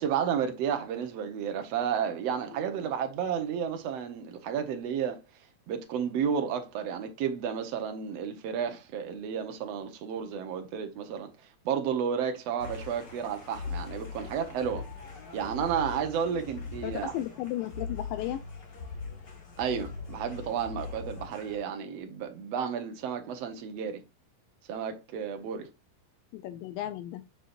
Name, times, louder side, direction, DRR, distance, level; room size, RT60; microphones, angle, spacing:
voice 1, 0.0-5.2 5.7-11.3 11.6-14.8 15.3-17.1 19.6-24.0 24.7-25.7, right 7 dB, 85° right, 1.4 m, -32 dB
sound 1, 12.6-21.6, left 4 dB, 50° left, 1.3 m, -41 dB
voice 2, 16.8-18.4 26.3-27.2, left 13 dB, 80° left, 2.1 m, -34 dB
7.4 x 6.8 x 2.5 m
omnidirectional pair, 4.5 m